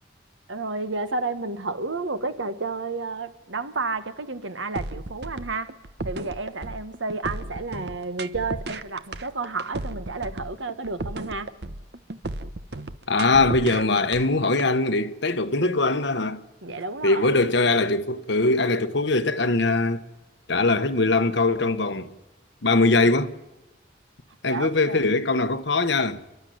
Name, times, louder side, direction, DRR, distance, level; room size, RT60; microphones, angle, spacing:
voice 1, 0.5-5.7 6.0-11.6 16.6-17.3 24.4-25.0, right 3 dB, 85° right, 1.4 m, -31 dB
sound 1, 4.8-14.7, right 2 dB, 60° right, 1.0 m, -34 dB
voice 2, 13.1-16.4 17.0-20.0 20.5-22.1 22.6-23.3 24.4-26.2, left 3 dB, 70° left, 1.3 m, -21 dB
29.5 x 12.0 x 9.5 m
head